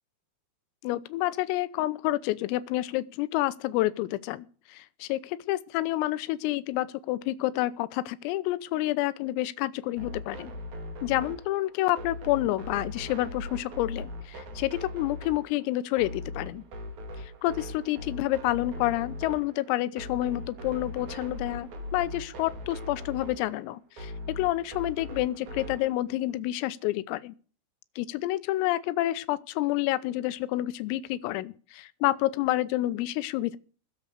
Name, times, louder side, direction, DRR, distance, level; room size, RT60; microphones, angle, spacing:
voice 1, 0.8-10.5 11.0-16.6 17.2-27.3 28.0-33.6, left 16 dB, 85° left, 3.5 m, -29 dB
sound 1, 10.0-25.9, left 1 dB, 50° right, 2.8 m, -40 dB
20.0 x 7.4 x 6.5 m
omnidirectional pair, 6.0 m